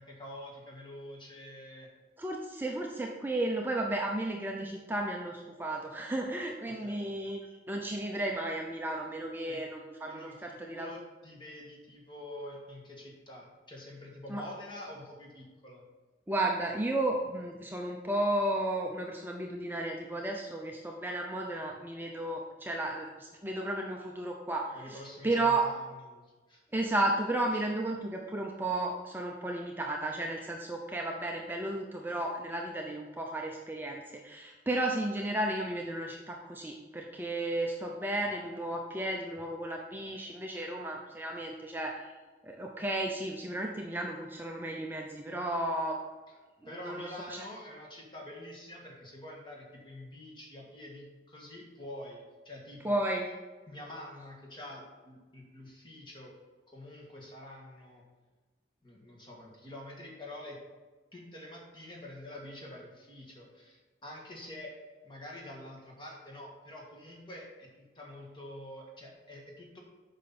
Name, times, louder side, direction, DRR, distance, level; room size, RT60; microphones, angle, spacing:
voice 1, 0.0-1.9 6.6-7.1 9.5-9.6 10.1-15.8 24.7-26.6 27.5-27.6 46.6-53.0 53.7-56.3 56.7-58.0 58.8-60.6 61.1-64.8 65.0-69.8, left 1 dB, 30° left, -2 dB, 1.7 m, -47 dB
voice 2, 2.2-11.0 14.3-14.4 16.3-25.7 26.7-42.1 42.4-46.0 46.7-47.4 52.8-53.3, right 1 dB, 10° right, 0 dB, 0.6 m, -33 dB
8.2 x 5.6 x 4.2 m, 1.3 s
head